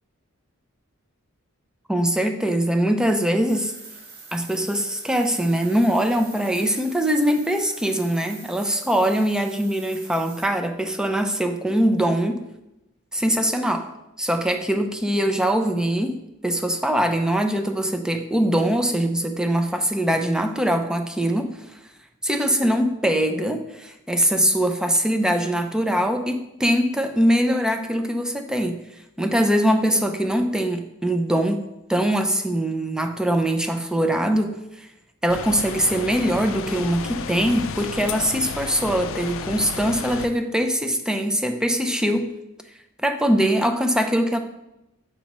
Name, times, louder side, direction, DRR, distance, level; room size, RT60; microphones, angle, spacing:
voice 1, 1.9-3.7 4.3-12.4 13.1-13.9 14.2-21.8 22.2-28.8 29.2-31.6 31.9-34.9 35.2-42.3 43.0-44.4, equal, 5° right, 6 dB, 0.4 m, -22 dB
sound 1, 3.5-10.5, right 3 dB, 50° right, 2.2 m, -44 dB
sound 2, 35.3-40.3, left 6 dB, 65° left, 0.4 m, -33 dB
7.1 x 5.3 x 3.0 m, 0.89 s
head